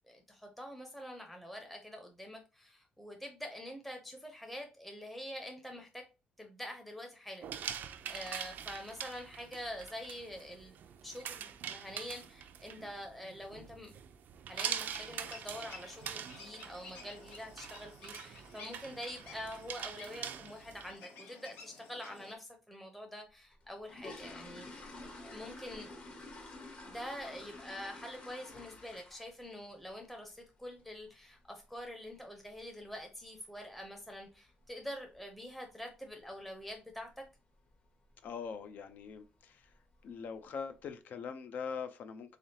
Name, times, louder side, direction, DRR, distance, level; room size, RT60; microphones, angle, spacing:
voice 1, 0.0-6.0 6.4-10.8 11.0-13.9 14.5-25.9 26.8-37.2, equal, 5° left, 0.7 m, -46 dB
sound 1, 7.4-20.9, right 8 dB, 70° right, 0.4 m, -44 dB
sound 2, 14.6-22.4, left 4 dB, 90° left, 1.0 m, -54 dB
sound 3, 23.5-29.4 29.7-30.0 30.3-30.4 30.8-30.9 31.3-31.5 31.8-31.9 32.5-32.6 32.8-33.0 33.5-33.8 34.1-34.2 34.6-34.8 35.1-35.2 35.6-35.7 36.4-36.7 37.0-37.3 37.7-37.8 38.2-38.3 39.1-39.2 39.6-40.1 40.6-40.7, left 2 dB, 45° left, 1.3 m, -50 dB
voice 2, 38.2-39.7 40.0-42.4, left 6 dB, 65° left, 0.6 m, -42 dB
3.7 x 3.3 x 2.8 m
cardioid pair, 110°, 3 cm